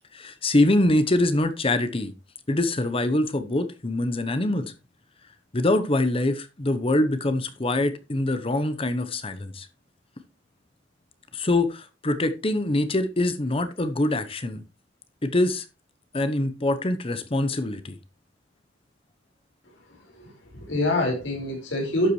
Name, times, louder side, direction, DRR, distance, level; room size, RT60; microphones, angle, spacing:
voice 1, 0.1-2.1 2.5-4.7 5.5-9.7 11.3-14.6 15.2-15.6 16.1-18.0, left 1 dB, 30° left, 0.8 m, -24 dB
voice 2, 20.2-22.1, left 1 dB, 75° left, 4.7 m, -26 dB
11.5 x 7.9 x 3.1 m
head